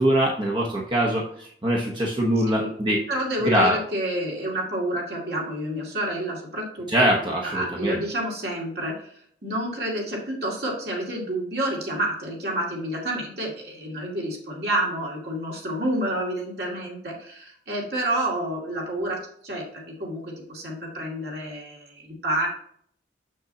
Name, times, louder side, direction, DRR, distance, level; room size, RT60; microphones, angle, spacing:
voice 1, 0.0-3.0 3.4-3.8 6.9-8.0, right 1 dB, 25° right, -2 dB, 0.8 m, -23 dB
voice 2, 3.1-6.9 7.4-9.1 9.4-22.5, right 1 dB, 60° right, -2 dB, 2.2 m, -29 dB
6.9 x 6.4 x 2.7 m, 0.63 s
head